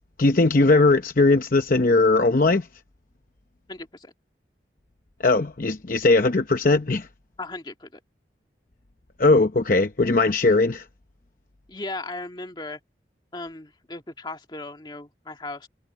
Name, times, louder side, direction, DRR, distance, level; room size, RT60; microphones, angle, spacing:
voice 1, 0.2-2.7 5.2-7.1 9.2-10.9, left 3 dB, 50° left, 0.8 m, -19 dB
voice 2, 3.7-4.1 7.4-8.0 11.7-12.8 13.3-15.7, left 2 dB, 25° left, 1.9 m, -36 dB
head